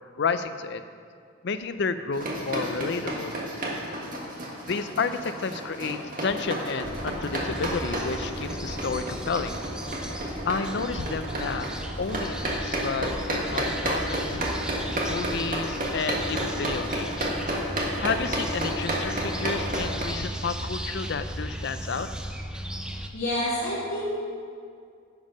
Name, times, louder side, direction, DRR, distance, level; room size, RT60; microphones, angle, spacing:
voice 1, 0.2-0.8 1.4-3.4 4.7-9.6 10.5-11.7 12.0-14.4 15.1-17.3 18.0-22.1, left 5 dB, 55° left, 10 dB, 0.5 m, -31 dB
sound 1, 2.1-20.0, right 1 dB, 45° right, 1.5 m, -31 dB
sound 2, 6.8-23.1, equal, 5° right, 0.4 m, -36 dB
voice 2, 23.1-24.1, left 1 dB, 75° left, -9 dB, 2.0 m, -28 dB
10.5 x 7.2 x 5.2 m, 2.3 s
head